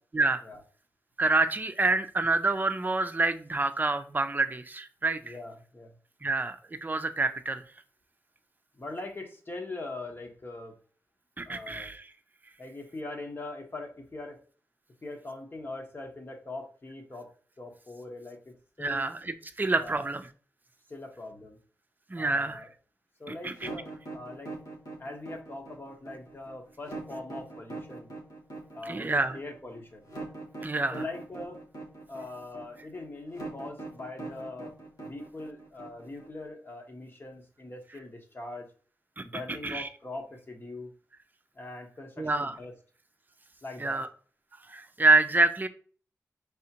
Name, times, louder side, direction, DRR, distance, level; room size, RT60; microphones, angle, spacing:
voice 1, 1.2-5.2 6.2-6.6 6.8-7.6 11.4-12.0 18.8-20.3 22.1-22.6 23.4-23.7 28.9-29.4 30.6-31.0 39.2-39.3 39.6-39.9 42.2-42.6 43.8-44.1 44.7-45.7, right 3 dB, 30° right, 9 dB, 0.6 m, -27 dB
voice 2, 5.2-6.0 8.7-10.8 11.4-11.9 12.6-14.4 15.0-19.1 19.8-20.1 20.9-21.6 22.2-22.7 23.2-24.5 25.0-28.1 28.7-30.0 30.9-31.6 32.1-34.7 35.0-38.7 39.2-40.9 41.5-42.7 43.6-44.0, left 2 dB, 35° left, 3 dB, 1.1 m, -42 dB
sound 1, 23.6-36.5, right 3 dB, 85° left, 1.3 m, -42 dB
4.8 x 3.5 x 2.9 m, 0.42 s
cardioid pair, 70°, 6 cm